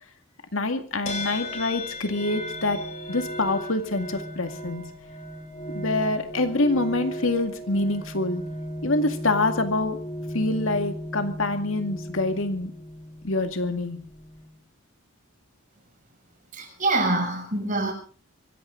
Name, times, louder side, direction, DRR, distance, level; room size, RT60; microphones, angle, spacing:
voice 1, 0.5-2.8 3.1-4.8 5.7-8.4 8.8-10.0 10.3-12.7 13.2-14.0, left 2 dB, 70° left, 7 dB, 2.1 m, -26 dB
sound 1, 1.1-14.6, equal, 35° left, 3.7 m, -36 dB
voice 2, 16.5-17.9, right 2 dB, 35° right, 3 dB, 6.5 m, -25 dB
24.5 x 15.0 x 3.8 m, 0.40 s
head